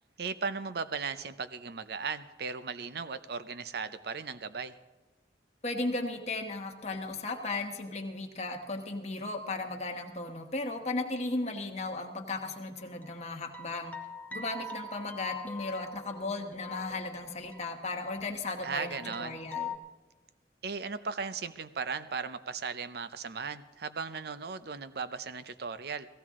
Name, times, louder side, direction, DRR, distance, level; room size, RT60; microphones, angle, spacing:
voice 1, 0.2-4.8 18.6-19.4 20.6-26.1, right 5 dB, 60° right, 13 dB, 0.6 m, -37 dB
voice 2, 5.6-13.9 14.3-19.8, left 2 dB, 40° left, 3 dB, 1.2 m, -36 dB
sound 1, 12.8-18.4 18.7-19.8, left 4 dB, 10° left, 0.7 m, -43 dB
17.0 x 15.5 x 3.7 m, 1.2 s
head